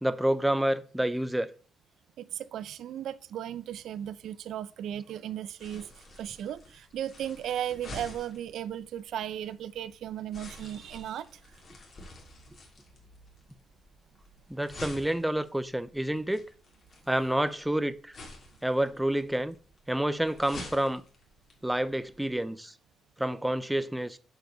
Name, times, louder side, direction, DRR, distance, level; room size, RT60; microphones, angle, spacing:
voice 1, 0.0-1.5 14.5-16.4 17.1-18.2 18.6-19.5 19.9-21.0 21.6-22.7 23.2-24.2, right 1 dB, 5° right, 0.5 m, -28 dB
voice 2, 2.2-11.4, right 10 dB, 75° right, 0.6 m, -36 dB
sound 1, 5.6-22.4, left 1 dB, 45° left, 3.2 m, -49 dB
9.1 x 4.9 x 6.6 m
cardioid pair, 140°, 0 cm